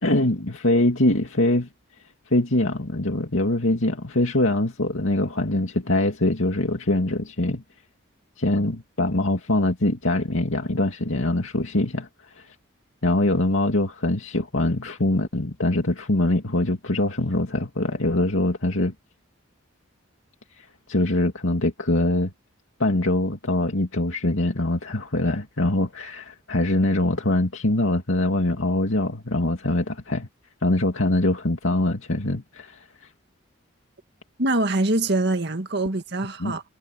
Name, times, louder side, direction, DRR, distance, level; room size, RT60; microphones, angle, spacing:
voice 1, 0.0-1.7 2.3-7.6 8.4-12.6 13.0-18.9 20.5-22.3 22.8-30.3 30.6-33.1 36.4-36.6, left 1 dB, 75° left, 2.4 m, -23 dB
voice 2, 34.4-36.6, right 2 dB, 55° right, 2.0 m, -24 dB
head